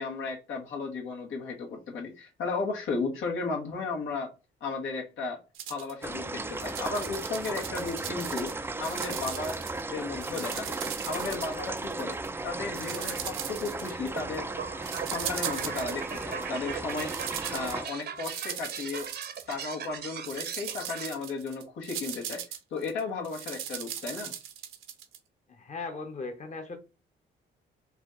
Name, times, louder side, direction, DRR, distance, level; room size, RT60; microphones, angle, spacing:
voice 1, 0.0-4.3 4.6-5.4 5.7-9.6 9.9-10.8 11.0-12.2 12.4-14.5 15.1-17.1 17.5-19.1 19.5-22.4 22.7-24.3, left 4 dB, 80° left, 1.5 m, -34 dB
sound 1, 5.6-6.1 6.5-8.5 8.8-9.8 10.1-12.3 12.7-14.4 14.8-16.5 16.7-19.9 20.2-25.2, right 9 dB, 80° right, 0.9 m, -39 dB
sound 2, 6.0-17.9, right 2 dB, 10° right, 0.4 m, -36 dB
sound 3, 14.2-21.1, right 8 dB, 55° right, 0.8 m, -39 dB
voice 2, 25.5-26.8, left 3 dB, 35° left, 1.0 m, -38 dB
4.9 x 2.9 x 3.7 m
cardioid pair, 90°, 20 cm